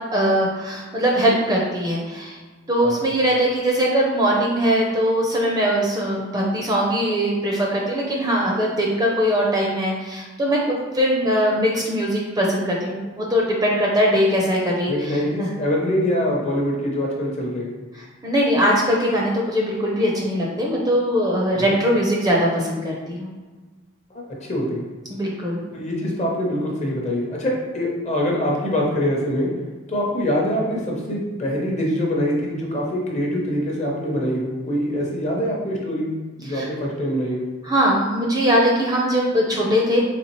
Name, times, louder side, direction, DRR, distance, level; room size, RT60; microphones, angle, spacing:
voice 1, 0.1-2.4 2.7-15.5 17.9-23.3 25.1-25.6 36.5-36.7 37.6-40.0, equal, 20° right, -2 dB, 0.5 m, -21 dB
voice 2, 14.9-17.7 21.6-21.7 24.4-24.8 25.7-29.5 29.9-36.1 36.4-37.4, equal, 35° left, -2 dB, 0.7 m, -24 dB
4.2 x 3.2 x 3.0 m, 1.3 s
head